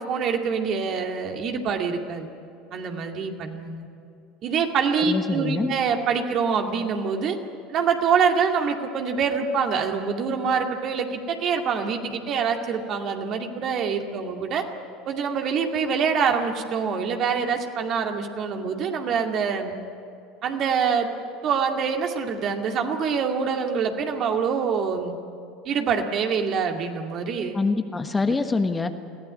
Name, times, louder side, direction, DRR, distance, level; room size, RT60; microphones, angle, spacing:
voice 1, 0.0-2.3 2.7-3.9 4.4-7.4 7.7-14.7 15.1-19.8 20.4-21.1 21.4-25.2 25.6-27.6 28.3-28.4, right 6 dB, 45° right, 3 dB, 2.2 m, -25 dB
voice 2, 5.0-5.7 27.5-28.9, left 3 dB, 20° left, 7 dB, 1.4 m, -25 dB
22.0 x 15.5 x 9.8 m, 2.5 s
hypercardioid pair, 75°, 0 cm